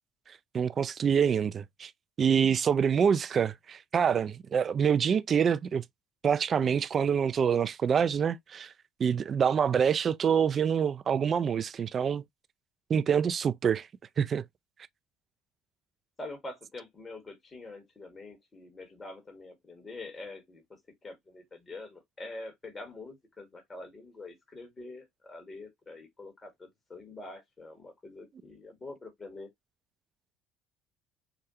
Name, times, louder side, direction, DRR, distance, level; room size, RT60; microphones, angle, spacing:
voice 1, 0.5-1.9 2.2-5.8 6.2-8.7 9.0-12.2 12.9-13.9 14.2-14.4, right 7 dB, 40° right, 0.4 m, -26 dB
voice 2, 16.2-29.5, left 2 dB, 30° left, 1.5 m, -45 dB
4.8 x 2.2 x 2.7 m
hypercardioid pair, 70°, 0 cm